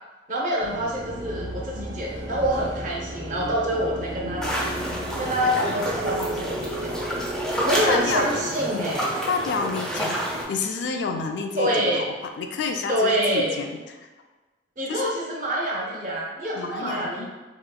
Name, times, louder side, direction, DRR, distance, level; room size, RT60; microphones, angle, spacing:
voice 1, 0.3-4.6 5.2-7.1 7.5-9.1 11.6-12.1 12.9-13.6 14.8-17.3, equal, 45° right, -3 dB, 0.6 m, -26 dB
sound 1, 0.6-8.4, right 1 dB, 85° right, 0.7 m, -34 dB
sound 2, 4.4-10.4, equal, 5° left, 0.5 m, -29 dB
voice 2, 7.7-8.2 9.3-10.2 10.5-14.1 14.9-15.1 16.5-17.3, left 4 dB, 70° left, 4 dB, 0.3 m, -29 dB
3.1 x 2.8 x 2.2 m, 1.2 s
head